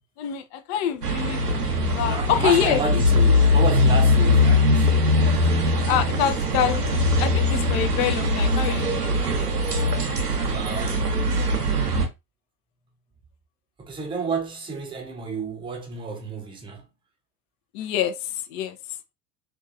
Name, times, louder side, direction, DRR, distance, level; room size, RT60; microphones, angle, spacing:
voice 1, 0.2-2.8 5.9-6.9 7.2-9.3 10.1-10.6 17.7-18.8, left 10 dB, 45° left, 0.5 m, -26 dB
sound 1, 1.0-12.1, left 2 dB, 85° right, 0.8 m, -21 dB
voice 2, 2.1-5.1 10.4-11.1 13.8-16.9, right 4 dB, 10° right, 0.7 m, -31 dB
3.0 x 2.7 x 2.4 m
figure-of-eight pair, 80°, 46 cm